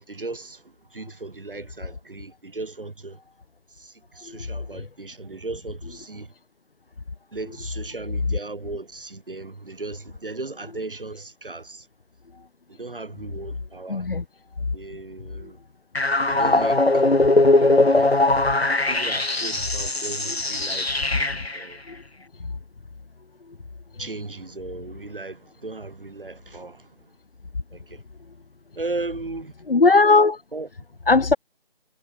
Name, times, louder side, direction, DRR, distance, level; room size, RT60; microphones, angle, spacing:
voice 1, 0.0-3.2 3.8-6.3 7.3-11.9 12.7-14.1 14.7-15.6 16.3-17.1 17.6-18.1 18.9-20.9 21.5-21.8 24.0-26.9 27.7-28.0 28.8-29.5 30.5-30.7, right 3 dB, 60° right, 6.7 m, -36 dB
voice 2, 13.9-14.2 21.1-21.2 21.9-22.0 29.7-30.4 31.1-31.4, left 3 dB, 65° left, 1.4 m, -18 dB
sound 1, 15.9-21.6, left 2 dB, 90° left, 3.4 m, -20 dB
figure-of-eight pair, 165°, 30 cm